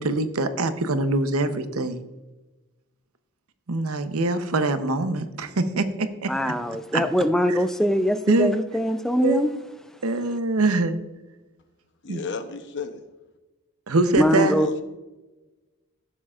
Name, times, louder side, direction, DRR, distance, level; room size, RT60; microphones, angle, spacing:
voice 1, 0.0-2.0 3.7-6.6 6.9-7.0 7.5-7.6 8.3-8.6 9.2-9.4 10.0-11.0 12.1-12.2 13.9-14.6, right 2 dB, 80° right, 10 dB, 0.8 m, -24 dB
voice 2, 6.3-9.5 14.2-14.8, equal, ahead, 9 dB, 0.4 m, -22 dB
voice 3, 12.0-13.0 14.3-14.8, left 5 dB, 55° left, 9 dB, 0.7 m, -33 dB
14.5 x 7.3 x 2.4 m, 1.1 s
head